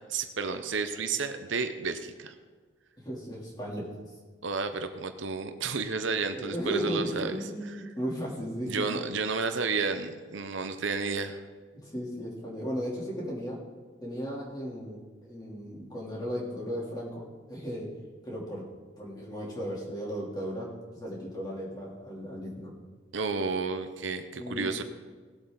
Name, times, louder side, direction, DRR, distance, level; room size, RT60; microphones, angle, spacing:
voice 1, 0.1-2.3 4.4-7.4 7.6-7.9 8.7-11.4 23.1-24.8, right 4 dB, 75° right, 8 dB, 0.8 m, -31 dB
voice 2, 3.0-3.9 6.3-9.0 11.8-13.6 14.0-17.9 18.2-18.7 19.0-20.7 20.9-22.7 24.4-24.7, equal, 20° left, -5 dB, 3.2 m, -35 dB
19.0 x 7.9 x 4.0 m, 1.5 s
head